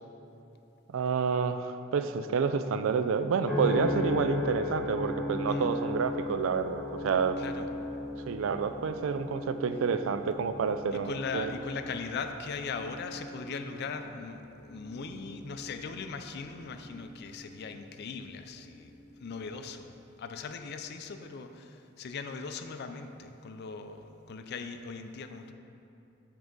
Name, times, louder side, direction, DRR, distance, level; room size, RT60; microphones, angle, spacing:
voice 1, 0.9-7.4 8.3-11.5, right 5 dB, 70° right, 9 dB, 0.3 m, -29 dB
sound 1, 3.5-17.9 18.5-18.9, left 2 dB, 5° left, 1.1 m, -37 dB
voice 2, 7.4-7.7 10.9-18.9 19.2-19.9 20.2-25.5, left 5 dB, 55° left, 7 dB, 0.4 m, -39 dB
7.3 x 4.7 x 3.8 m, 2.8 s
head